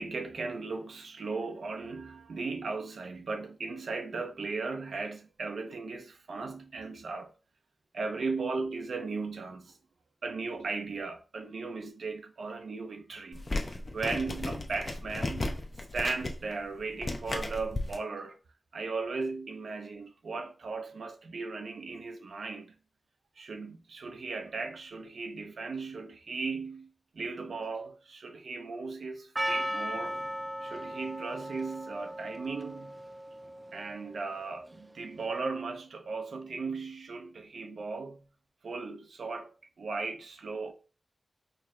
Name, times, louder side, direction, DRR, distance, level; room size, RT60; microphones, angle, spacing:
voice 1, 0.0-7.3 7.9-9.8 10.2-15.6 15.9-18.4 18.7-22.7 23.4-30.2 30.6-33.0 33.7-38.2 38.6-40.7, right 4 dB, 90° right, 0.4 m, -37 dB
sound 1, 13.3-18.0, left 2 dB, 45° left, 0.6 m, -35 dB
Percussion, 29.4-34.3, equal, 25° right, 0.4 m, -37 dB
4.4 x 2.0 x 3.6 m
cardioid pair, 60°, 0 cm